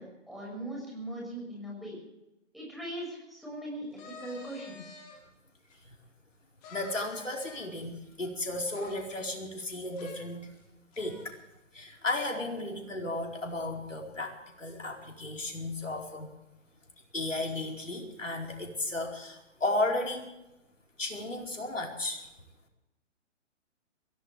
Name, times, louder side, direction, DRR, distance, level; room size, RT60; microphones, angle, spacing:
voice 1, 0.0-2.0 2.5-5.0, right 1 dB, ahead, -3 dB, 6.5 m, -40 dB
sound 1, 3.9-5.2 5.7-5.8 6.6-7.9 8.7-9.7 9.9-10.2 10.5-10.6 10.9-11.4, left 3 dB, 30° left, 5.3 m, -49 dB
voice 2, 6.7-10.5 11.0-11.4 11.7-16.3 17.1-20.3 21.0-22.3, left 2 dB, 80° left, 1 dB, 4.7 m, -34 dB
23.0 x 16.5 x 3.5 m, 0.92 s
figure-of-eight pair, 125°, 37 cm